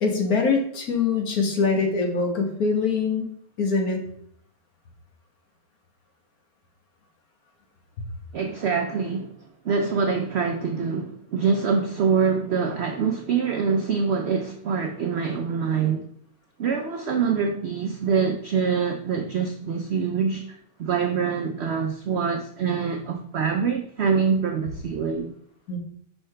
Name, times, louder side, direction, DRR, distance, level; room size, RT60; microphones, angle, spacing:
voice 1, 0.0-3.3 3.6-4.0 25.7-25.8, left 4 dB, 65° left, 1.6 m, -23 dB
voice 2, 8.3-9.3 9.6-16.0 16.6-25.3, right 6 dB, 80° right, 0.6 m, -25 dB
5.7 x 5.5 x 3.3 m
omnidirectional pair, 1.8 m